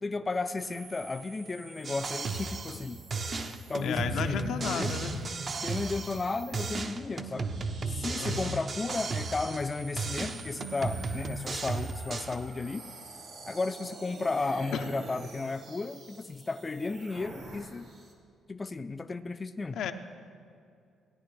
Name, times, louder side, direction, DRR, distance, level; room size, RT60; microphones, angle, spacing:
voice 1, 0.0-3.0 3.7-5.0 5.6-7.5 7.9-12.8 13.5-17.9 18.5-19.8, left 3 dB, 25° left, 9 dB, 0.3 m, -34 dB
sound 1, 0.6-18.1, right 3 dB, 70° right, 1.6 m, -49 dB
sound 2, 1.8-2.9 3.1-6.3 6.5-9.7 10.0-12.4, right 4 dB, 45° right, 0.6 m, -35 dB
voice 2, 3.8-5.3 8.2-8.6 14.7-14.8 19.8-19.9, left 7 dB, 80° left, 7 dB, 0.6 m, -33 dB
17.0 x 9.6 x 3.2 m, 2.4 s
cardioid pair, 90°, 0 cm